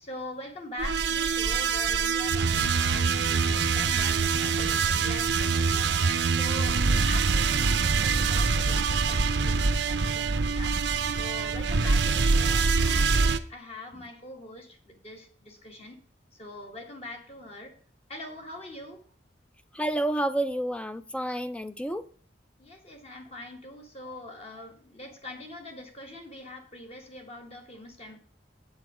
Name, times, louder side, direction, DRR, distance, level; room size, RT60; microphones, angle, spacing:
voice 1, 0.0-6.0 6.3-10.8 11.2-16.0 16.4-17.8 18.1-19.0 22.6-28.2, left 1 dB, 35° left, 1.6 m, -43 dB
sound 1, 0.8-13.4, right 5 dB, 80° right, 0.7 m, -24 dB
voice 2, 19.7-22.0, right 1 dB, 5° left, 0.5 m, -29 dB
8.1 x 7.9 x 4.9 m
head